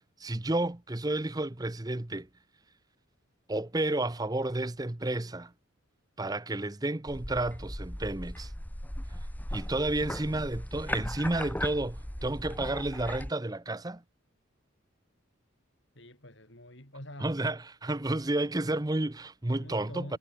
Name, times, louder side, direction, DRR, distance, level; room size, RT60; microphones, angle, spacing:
voice 1, 0.0-2.3 3.5-5.5 6.2-8.5 9.5-14.0 17.2-20.2, right 2 dB, 20° right, 0.7 m, -31 dB
sound 1, 7.1-13.3, left 1 dB, 10° left, 1.4 m, -37 dB
voice 2, 15.9-17.4 19.6-20.2, left 1 dB, 60° left, 7.8 m, -46 dB
head